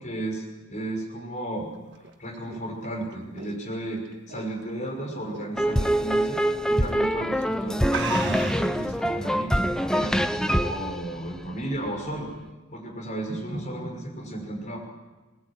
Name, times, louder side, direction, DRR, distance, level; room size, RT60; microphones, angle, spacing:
voice 1, 0.0-1.7 2.2-6.4 6.7-10.2 10.6-12.3 12.7-14.8, right 1 dB, 40° left, 1 dB, 5.9 m, -33 dB
sound 1, 1.7-4.9 5.3-5.6 6.0-6.1 6.9-7.1 7.4-7.5 7.9-8.8, right 5 dB, 60° right, 1.7 m, -36 dB
sound 2, 5.6-11.9, equal, 5° left, 0.7 m, -25 dB
21.5 x 20.0 x 8.9 m, 1.2 s
head